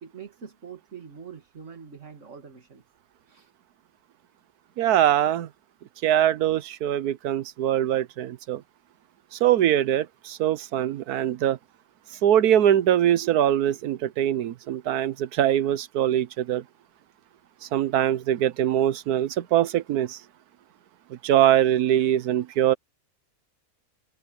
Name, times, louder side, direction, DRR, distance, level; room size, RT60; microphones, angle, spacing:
voice 1, 0.0-2.8 3.3-3.5, right 6 dB, 55° right, 2.5 m, -44 dB
voice 2, 4.8-5.5 6.0-8.6 9.3-11.6 12.2-16.6 17.6-20.2 21.2-22.7, right 11 dB, 90° right, 1.3 m, -22 dB
omnidirectional pair, 1.6 m